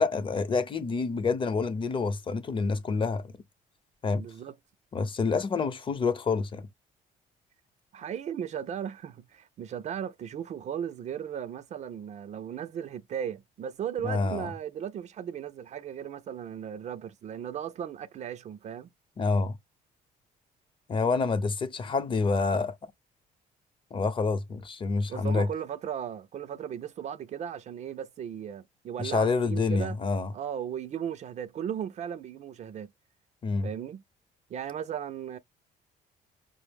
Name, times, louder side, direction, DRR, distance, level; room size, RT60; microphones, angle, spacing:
voice 1, 0.0-3.2 4.0-4.2 4.9-6.7 14.0-14.5 19.2-19.6 20.9-22.7 23.9-25.5 29.0-30.3 33.4-33.7, left 4 dB, 35° left, 0.7 m, -27 dB
voice 2, 4.2-4.5 7.9-18.9 25.1-30.0 30.3-32.9 33.6-34.0 34.5-35.4, right 9 dB, 50° right, 0.5 m, -36 dB
5.2 x 2.0 x 3.4 m
cardioid pair, 120°, 15 cm